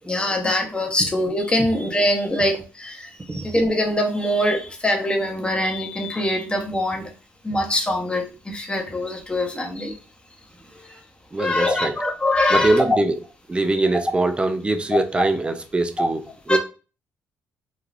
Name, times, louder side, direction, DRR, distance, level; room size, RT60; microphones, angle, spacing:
voice 1, 0.1-7.1 7.4-10.0 10.9-11.0 11.4-13.0 14.9-15.0 16.0-16.1 16.5-16.6, left 1 dB, 15° left, 0.8 m, -23 dB
voice 2, 11.3-12.0 12.5-13.2 13.5-16.6, right 2 dB, 20° right, 0.4 m, -22 dB
3.2 x 2.3 x 2.4 m
cardioid pair, 80°, 6 cm